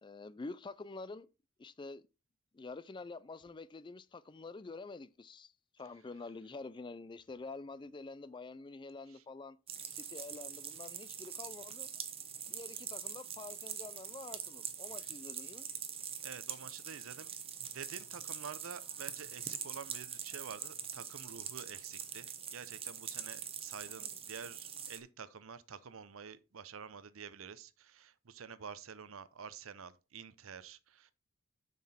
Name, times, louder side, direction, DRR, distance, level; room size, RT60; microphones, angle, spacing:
voice 1, 0.0-1.3 1.6-2.0 2.5-9.6 9.9-11.9 12.5-15.7 24.0-24.1, left 3 dB, 25° left, 0.4 m, -47 dB
sound 1, 9.7-25.0, right 8 dB, 30° right, 0.9 m, -44 dB
voice 2, 16.2-17.3 17.7-31.1, right 6 dB, 80° right, 0.7 m, -49 dB
7.4 x 5.9 x 4.2 m
head